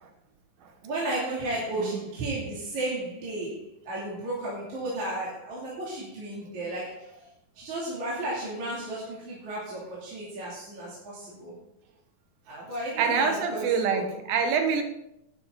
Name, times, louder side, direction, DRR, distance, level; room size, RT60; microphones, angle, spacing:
voice 1, 0.8-7.1 7.6-11.5 12.5-14.1, right 1 dB, 55° right, -7 dB, 3.8 m, -33 dB
voice 2, 13.0-14.8, right 6 dB, 75° right, 5 dB, 3.2 m, -26 dB
12.0 x 11.0 x 3.8 m, 0.82 s
omnidirectional pair, 4.3 m